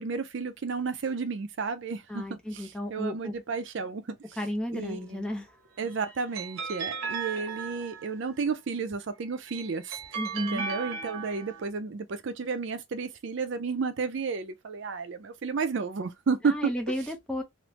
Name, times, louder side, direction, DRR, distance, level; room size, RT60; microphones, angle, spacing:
voice 1, 0.0-4.4 4.7-5.3 5.8-10.0 10.4-16.7, right 5 dB, 55° right, 0.4 m, -32 dB
voice 2, 2.1-3.3 4.4-5.5 10.2-10.7 16.4-17.4, left 1 dB, 5° left, 0.5 m, -33 dB
sound 1, 5.7-8.3 9.2-11.7, right 6 dB, 85° right, 0.9 m, -36 dB
3.1 x 2.1 x 2.9 m
head